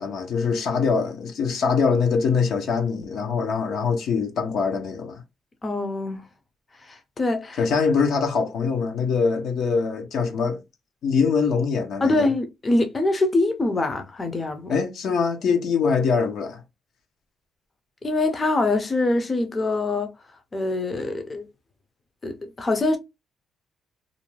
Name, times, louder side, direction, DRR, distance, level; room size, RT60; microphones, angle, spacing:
voice 1, 0.0-5.2 7.6-10.6 11.0-12.3 14.7-16.6, left 5 dB, 75° left, 0.7 m, -23 dB
voice 2, 5.6-6.2 6.8-7.6 12.0-14.7 18.0-20.1 20.5-21.5 22.2-23.0, left 2 dB, 30° left, 0.6 m, -24 dB
2.6 x 2.2 x 3.0 m
cardioid pair, 90°, 0 cm